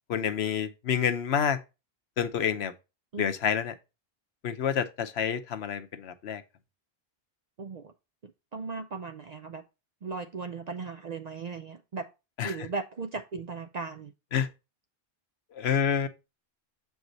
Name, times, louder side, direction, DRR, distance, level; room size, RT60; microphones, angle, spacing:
voice 1, 0.1-1.6 2.2-2.7 3.2-3.7 4.4-6.4 12.4-12.5 14.3-14.5 15.6-16.1, left 8 dB, 80° left, 1.0 m, -28 dB
voice 2, 7.6-7.9 8.2-9.6 10.0-12.1 12.4-14.1 15.7-15.8, right 4 dB, 50° right, 0.6 m, -37 dB
7.2 x 4.7 x 3.9 m
omnidirectional pair, 1.1 m